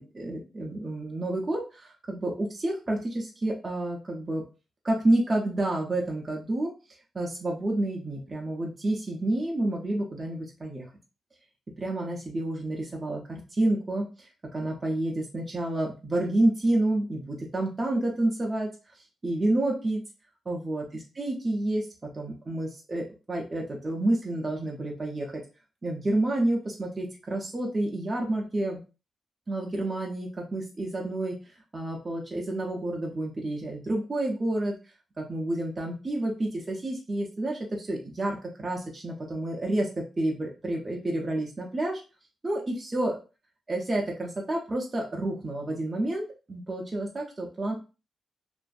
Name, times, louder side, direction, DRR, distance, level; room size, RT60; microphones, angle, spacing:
voice 1, 0.0-4.4 4.8-6.7 7.1-10.9 11.8-18.7 19.2-20.0 20.5-25.4 25.8-28.8 29.5-31.4 31.7-34.7 35.2-42.0 42.4-43.2 43.7-47.7, right 1 dB, 20° right, -1 dB, 0.4 m, -29 dB
2.5 x 2.5 x 2.3 m, 0.32 s
wide cardioid pair, 165°, 0 cm